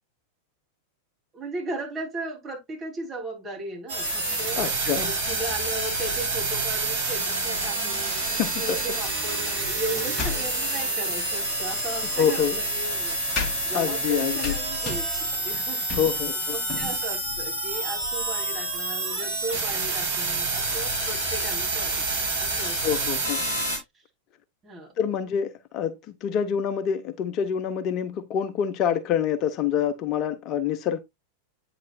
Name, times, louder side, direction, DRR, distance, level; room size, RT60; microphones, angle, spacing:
voice 1, 1.3-4.6 5.0-8.2 8.6-13.1 13.6-15.9 16.5-22.0 22.4-22.8 24.6-24.9, right 2 dB, 20° right, 3.2 m, -36 dB
sound 1, 3.9-23.8, right 2 dB, 65° right, 3.9 m, -28 dB
voice 2, 4.6-5.1 8.4-8.8 9.5-9.7 12.2-12.6 13.7-14.5 15.9-16.5 22.8-23.5 25.0-31.0, left 8 dB, 35° left, 0.6 m, -26 dB
sound 2, 9.6-10.8 11.9-20.6, left 5 dB, 20° left, 2.2 m, -38 dB
8.5 x 5.9 x 2.4 m
figure-of-eight pair, 90°, 0 cm